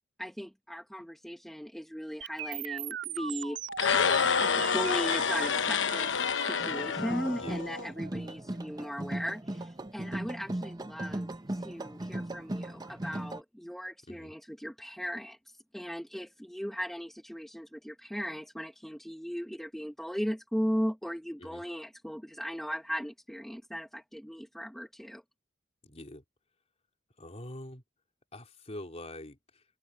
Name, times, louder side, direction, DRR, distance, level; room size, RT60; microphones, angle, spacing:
voice 1, 0.2-3.6 4.4-25.2, equal, ahead, 1.1 m, -37 dB
sound 1, 2.2-10.2, right 8 dB, 80° right, 2.2 m, -41 dB
sound 2, 3.7-7.9, left 6 dB, 80° left, 1.1 m, -28 dB
sound 3, 6.6-13.4, right 1 dB, 20° right, 0.9 m, -38 dB
voice 2, 7.3-7.7 14.1-14.3 21.4-21.6 25.8-26.2 27.2-27.8 28.3-29.6, left 1 dB, 35° left, 3.5 m, -44 dB
open air
head